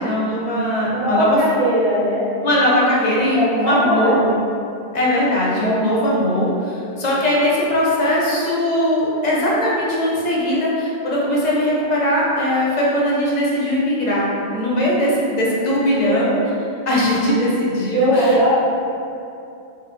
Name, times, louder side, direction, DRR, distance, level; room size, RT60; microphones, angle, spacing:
voice 1, 0.0-1.4 2.4-4.1 4.9-16.3 16.9-18.5, left 1 dB, 50° left, -5 dB, 0.5 m, -20 dB
voice 2, 0.8-2.3 3.2-4.4 5.6-6.1 14.9-15.1 15.9-16.4 17.3-17.4 17.9-18.5, equal, 45° right, -7 dB, 0.5 m, -20 dB
2.8 x 2.0 x 3.6 m, 2.6 s
omnidirectional pair, 1.2 m